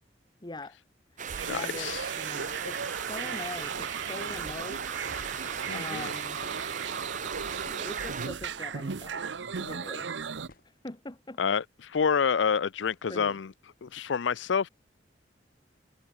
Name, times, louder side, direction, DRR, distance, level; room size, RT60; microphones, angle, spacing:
voice 1, 0.4-0.8 1.1-1.9 2.2-5.0 5.7-6.4 7.6-10.1 10.6-11.4 13.1-13.4, left 2 dB, 25° left, 1.4 m, -42 dB
sound 1, 1.2-8.3, right 7 dB, 45° right, 1.6 m, -38 dB
sound 2, 1.3-10.5, right 6 dB, 85° right, 0.7 m, -36 dB
voice 2, 1.4-2.0 5.7-6.1 11.4-13.5 13.8-14.7, left 6 dB, 90° left, 0.5 m, -28 dB
sound 3, 8.4-8.9 10.5-11.1, left 1 dB, 55° left, 4.5 m, -57 dB
head